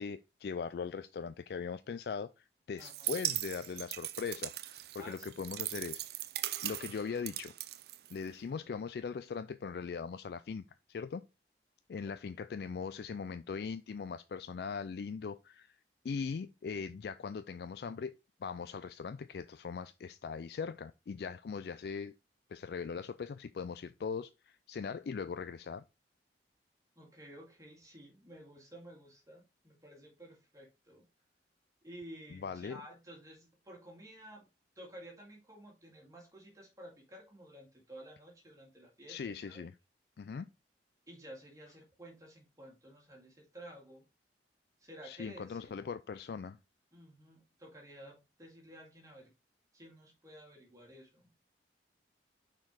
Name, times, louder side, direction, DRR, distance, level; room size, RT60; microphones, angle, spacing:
voice 1, 0.0-6.0 6.6-7.5 8.1-10.6 10.9-11.2 11.9-15.7 16.0-18.1 18.4-22.1 22.5-25.8 32.3-32.8 39.1-39.7 40.2-40.5 45.0-46.6, left 5 dB, 60° left, 0.3 m, -40 dB
voice 2, 2.8-3.1 5.0-5.4 12.0-12.2 27.0-31.0 31.8-34.5 34.8-39.6 41.1-44.0 44.8-45.9 46.9-49.3 49.7-51.3, right 1 dB, 20° right, 2.0 m, -53 dB
sound 1, 2.8-8.5, right 14 dB, 60° right, 0.4 m, -39 dB
5.9 x 4.5 x 4.8 m
head